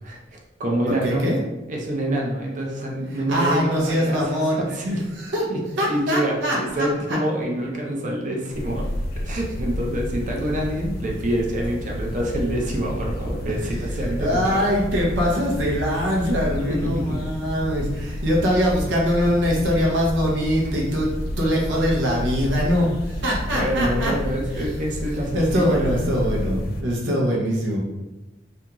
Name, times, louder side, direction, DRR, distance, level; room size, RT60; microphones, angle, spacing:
voice 1, 0.0-1.2 1.7-4.4 4.7-5.0 5.5-5.6 5.9-8.9 9.2-14.7 16.7-17.2 23.5-26.1, right 1 dB, 45° right, -1 dB, 0.5 m, -26 dB
voice 2, 0.9-1.4 3.1-4.6 5.2-5.5 5.8-7.2 13.2-24.1 24.5-24.7 25.3-27.8, equal, 85° right, -3 dB, 0.6 m, -23 dB
sound 1, 8.5-26.8, left 1 dB, 55° left, 0.3 m, -30 dB
2.5 x 2.2 x 2.9 m, 1.1 s
head